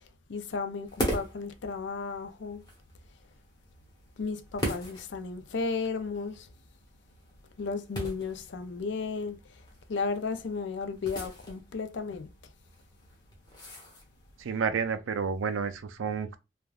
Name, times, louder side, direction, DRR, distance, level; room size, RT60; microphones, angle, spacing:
voice 1, 0.3-2.6 4.2-6.5 7.6-9.4 9.9-12.3, left 4 dB, 65° left, 0.4 m, -34 dB
sound 1, 0.9-14.4, equal, 20° left, 0.9 m, -41 dB
voice 2, 14.4-16.4, right 6 dB, 85° right, 0.4 m, -30 dB
3.3 x 2.2 x 2.3 m
head